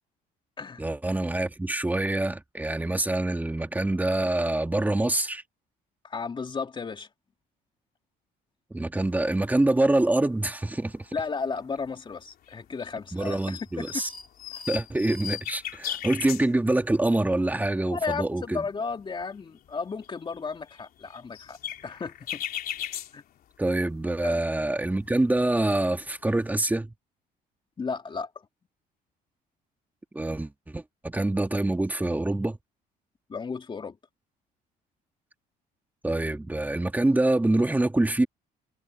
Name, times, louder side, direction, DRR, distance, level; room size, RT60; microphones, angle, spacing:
voice 1, 0.8-5.4 8.7-11.1 13.1-14.1 14.7-18.6 23.6-26.9 30.1-32.6 36.0-38.3, right 2 dB, 10° right, 2.0 m, -25 dB
voice 2, 6.0-7.1 11.1-13.9 14.5-14.6 17.9-21.6 21.8-22.4 23.1-23.2 24.2-24.4 27.8-28.3 33.3-34.0, left 5 dB, 30° left, 2.5 m, -34 dB
sound 1, 9.3-9.4 9.7-10.3 10.6-11.9 12.5-12.9 13.2-16.9 17.3-17.4 17.6-18.1 18.5-23.9 24.2-26.4, left 10 dB, 65° left, 3.7 m, -39 dB
cardioid pair, 110°, 17 cm